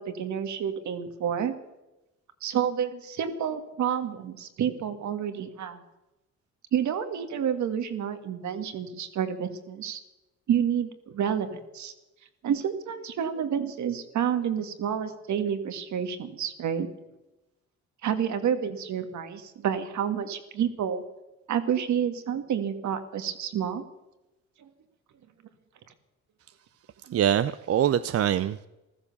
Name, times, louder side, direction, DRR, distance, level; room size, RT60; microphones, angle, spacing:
voice 1, 0.0-1.6 2.4-5.8 6.7-10.0 10.5-11.9 12.4-16.9 18.0-21.0 21.5-23.9 24.6-24.7 27.1-27.2, right 8 dB, 70° right, 9 dB, 1.9 m, -29 dB
voice 2, 27.1-28.7, right 10 dB, 50° right, 13 dB, 0.6 m, -24 dB
15.0 x 13.5 x 7.0 m, 0.98 s
cardioid pair, 90°, 30 cm